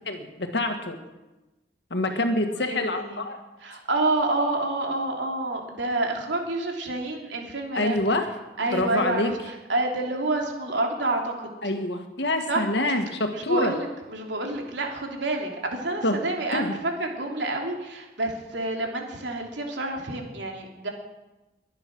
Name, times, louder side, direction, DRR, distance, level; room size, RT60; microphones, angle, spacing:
voice 1, 0.1-1.0 1.9-3.4 7.7-8.3 8.7-9.3 11.6-13.7 16.0-16.2 16.5-16.8, left 2 dB, 75° left, 5 dB, 1.9 m, -26 dB
voice 2, 2.0-3.2 3.6-8.0 8.6-9.3 9.7-11.5 12.5-12.6 13.3-16.7 17.0-20.9, right 2 dB, 85° right, 1 dB, 3.2 m, -28 dB
22.5 x 9.6 x 6.3 m, 1.1 s
head